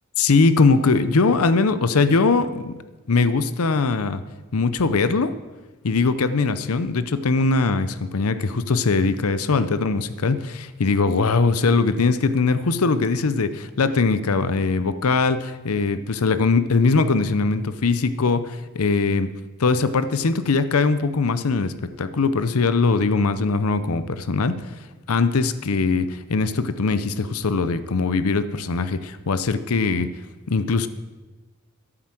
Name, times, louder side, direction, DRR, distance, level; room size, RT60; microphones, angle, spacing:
voice 1, 0.2-2.8 3.1-4.2 4.5-5.3 5.8-19.3 19.6-30.1 30.5-30.9, left 4 dB, 80° left, 13 dB, 0.7 m, -21 dB
13.0 x 8.9 x 7.6 m, 1.2 s
head